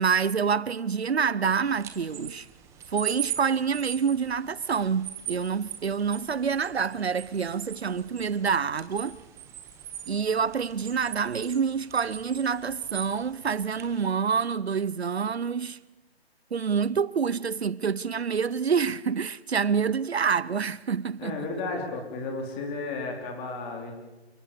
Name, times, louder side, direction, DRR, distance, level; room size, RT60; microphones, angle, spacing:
voice 1, 0.0-2.5 2.9-9.2 10.1-15.8 16.5-21.5, right 6 dB, 80° right, 0.9 m, -27 dB
sound 1, 1.7-14.0, right 10 dB, 10° right, 1.3 m, -41 dB
voice 2, 21.2-23.9, left 3 dB, 15° left, 4.0 m, -33 dB
29.0 x 17.5 x 6.9 m
figure-of-eight pair, 155°, 32 cm